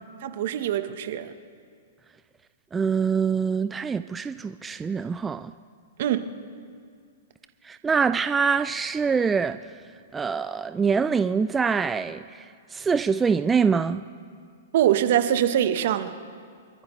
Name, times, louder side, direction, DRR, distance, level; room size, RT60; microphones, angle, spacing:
voice 1, 0.2-1.3 6.0-6.2 14.7-16.2, right 11 dB, 60° right, 10 dB, 1.0 m, -23 dB
voice 2, 2.7-5.5 7.6-9.7 10.1-14.0, right 5 dB, 15° right, 11 dB, 0.3 m, -24 dB
25.5 x 14.0 x 3.2 m, 2.2 s
hypercardioid pair, 135°, 0 cm